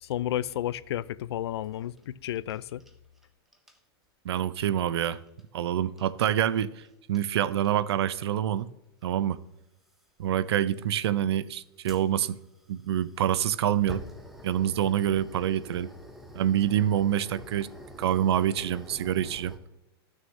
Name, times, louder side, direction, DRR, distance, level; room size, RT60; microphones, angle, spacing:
voice 1, 0.0-2.8, left 12 dB, 85° left, 0.4 m, -32 dB
sound 1, 1.6-3.3 3.5-3.8 4.9-5.4 6.0-6.1 6.4-6.9 7.1-7.2 7.5-7.9 9.0-9.1 9.9-10.0 11.9-19.6, equal, ahead, 0.5 m, -47 dB
voice 2, 4.2-5.2 5.5-8.7 9.0-9.4 10.2-12.4 12.7-14.0 14.4-15.9 16.3-17.7 18.0-19.5, right 10 dB, 90° right, 0.5 m, -26 dB
12.5 x 6.3 x 3.1 m
supercardioid pair, 175°, 13 cm